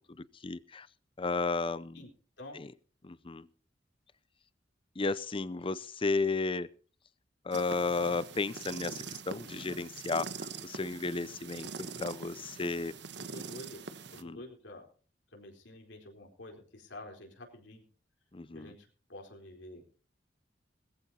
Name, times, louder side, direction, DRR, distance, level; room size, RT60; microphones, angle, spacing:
voice 1, 0.1-0.9 1.2-2.0 2.5-2.7 3.0-3.5 5.0-6.7 7.4-12.9 14.2-14.4 18.3-18.7, left 3 dB, 30° left, 17 dB, 0.6 m, -33 dB
sound 1, 7.5-14.2, right 5 dB, 65° right, 1.1 m, -44 dB
voice 2, 13.2-14.8 15.3-17.8 18.5-19.9, left 1 dB, 80° left, 2 dB, 4.1 m, -49 dB
20.0 x 14.5 x 2.9 m, 0.40 s
head